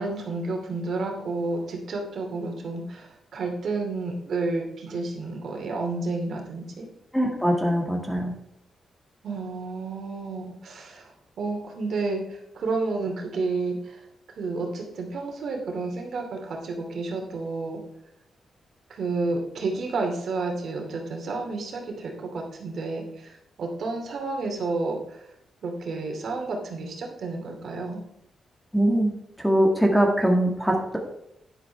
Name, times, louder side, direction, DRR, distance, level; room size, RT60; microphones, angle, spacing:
voice 1, 0.0-6.9 9.2-11.1 11.4-14.0 14.4-17.8 18.9-25.2 25.6-28.0, right 3 dB, 55° right, 2 dB, 2.5 m, -31 dB
voice 2, 7.1-8.3 28.7-29.1 29.4-31.0, equal, ahead, 1 dB, 1.8 m, -22 dB
11.5 x 10.5 x 3.4 m, 0.79 s
wide cardioid pair, 165°, 0 cm